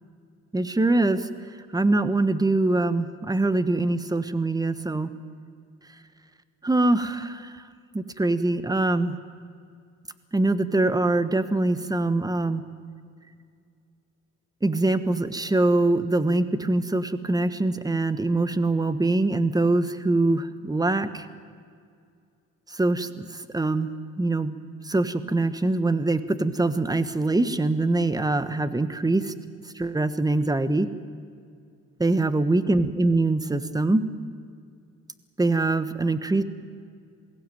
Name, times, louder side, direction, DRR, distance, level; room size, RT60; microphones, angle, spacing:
voice 1, 0.5-1.3 1.7-5.1 6.6-7.6 7.9-9.2 10.3-12.6 14.6-21.3 22.7-24.5 24.8-29.3 29.7-30.9 32.0-34.0 35.4-36.4, right 2 dB, 10° right, 12 dB, 1.3 m, -23 dB
22.0 x 16.5 x 9.3 m, 2.2 s
cardioid pair, 90°, 30 cm